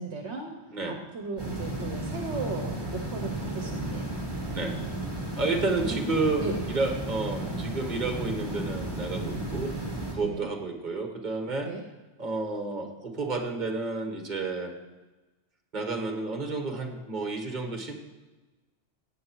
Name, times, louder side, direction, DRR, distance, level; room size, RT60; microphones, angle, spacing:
voice 1, 0.0-4.2 5.8-6.1 6.4-6.6 10.2-10.5 11.6-11.8, right 3 dB, 65° right, 3 dB, 1.4 m, -36 dB
sound 1, 1.4-10.2, right 1 dB, 20° right, 2.5 m, -34 dB
voice 2, 5.4-9.7 10.1-11.7 12.2-14.7 15.7-17.9, right 3 dB, 40° right, 3 dB, 1.8 m, -31 dB
17.0 x 8.6 x 4.7 m, 1.2 s
omnidirectional pair, 1.2 m